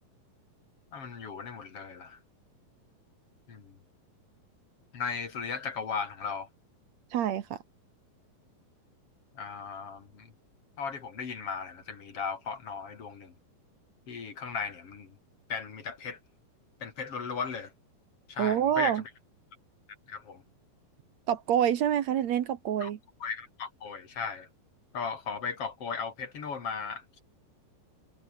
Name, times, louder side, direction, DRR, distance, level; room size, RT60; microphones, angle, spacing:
voice 1, 0.9-2.2 3.5-3.8 4.9-6.5 9.4-10.3 10.8-13.3 14.1-15.2 15.5-16.2 16.8-17.7 18.3-19.1 20.1-20.4 22.8-22.9 23.2-24.5 24.9-27.2, left 5 dB, 40° left, 3.4 m, -36 dB
voice 2, 7.1-7.6 18.4-19.0 21.3-23.0, right 10 dB, 60° right, 2.1 m, -27 dB
omnidirectional pair, 4.2 m